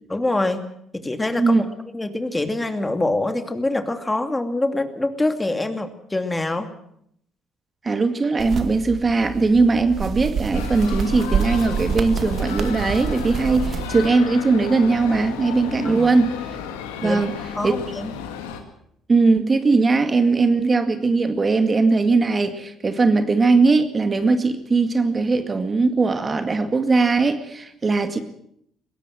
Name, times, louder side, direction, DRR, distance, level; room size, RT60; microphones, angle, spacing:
voice 1, 0.1-0.7 0.9-1.7 1.9-6.7 15.8-16.1 17.0-17.2 17.6-18.1, left 2 dB, 15° left, 7 dB, 2.6 m, -25 dB
voice 2, 7.8-16.3 17.0-17.3 17.6-17.7 19.1-28.2, right 3 dB, 35° right, 8 dB, 2.1 m, -19 dB
sound 1, 8.4-14.1, right 6 dB, 55° right, 2.0 m, -27 dB
sound 2, 10.5-18.6, left 8 dB, 90° left, 2.2 m, -33 dB
21.5 x 17.5 x 7.7 m, 0.71 s
hypercardioid pair, 55°, 0 cm